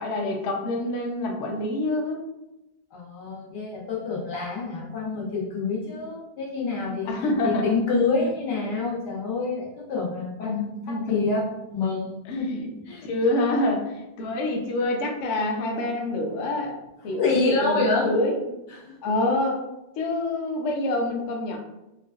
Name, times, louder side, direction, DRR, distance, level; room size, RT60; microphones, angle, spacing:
voice 1, 0.0-2.2 7.1-7.8 10.4-11.2 12.3-12.7 13.0-16.8 17.0-18.5 19.0-19.6 20.0-21.6, left 2 dB, 65° left, 1 dB, 0.7 m, -26 dB
voice 2, 2.9-7.1 7.4-11.4 11.7-12.5 12.9-13.1 17.2-18.1 18.7-18.9, left 3 dB, 90° left, -4 dB, 1.5 m, -27 dB
3.8 x 2.4 x 2.3 m, 0.95 s
omnidirectional pair, 1.8 m